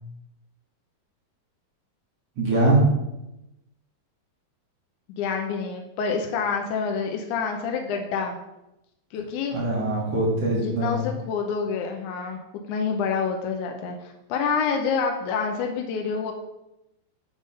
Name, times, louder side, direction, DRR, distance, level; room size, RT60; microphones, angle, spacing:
voice 1, 2.4-2.8 9.5-11.0, right 2 dB, 50° right, -5 dB, 2.2 m, -22 dB
voice 2, 5.2-8.4 9.1-9.6 10.5-12.4 12.7-16.3, left 5 dB, 80° left, 2 dB, 1.9 m, -27 dB
9.7 x 3.6 x 5.5 m, 0.91 s
omnidirectional pair, 4.2 m